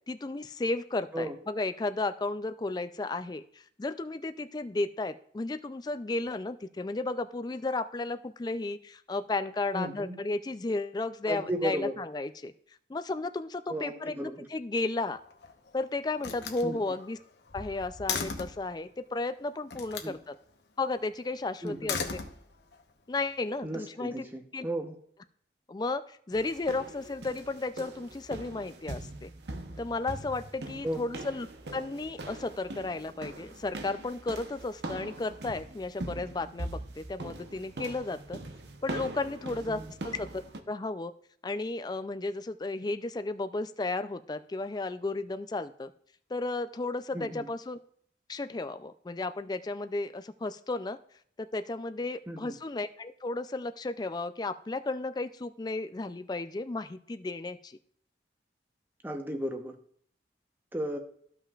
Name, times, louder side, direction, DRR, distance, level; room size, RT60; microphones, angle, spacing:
voice 1, 0.1-3.4 3.8-12.5 12.9-15.2 15.7-17.2 17.5-20.4 20.8-22.0 23.1-24.3 24.5-24.7 25.7-29.3 29.8-31.5 31.7-38.4 38.8-40.4 40.7-41.1 41.4-45.9 46.3-47.8 48.3-51.0 51.4-57.8, left 2 dB, 25° left, 11 dB, 0.3 m, -34 dB
voice 2, 9.7-10.2 11.3-12.0 13.7-14.5 16.6-16.8 20.0-20.2 21.6-21.9 23.6-25.0 30.8-31.1 39.7-39.9 47.1-47.5 52.3-52.6 59.0-59.8 60.7-61.0, equal, 10° right, 5 dB, 0.9 m, -34 dB
Slam, 15.1-15.7 16.2-18.7 19.7-20.2 21.7-22.8, left 5 dB, 70° left, 0.9 m, -37 dB
sound 1, 26.3-40.6, right 2 dB, 70° right, 0.9 m, -42 dB
14.0 x 5.6 x 2.4 m, 0.62 s
head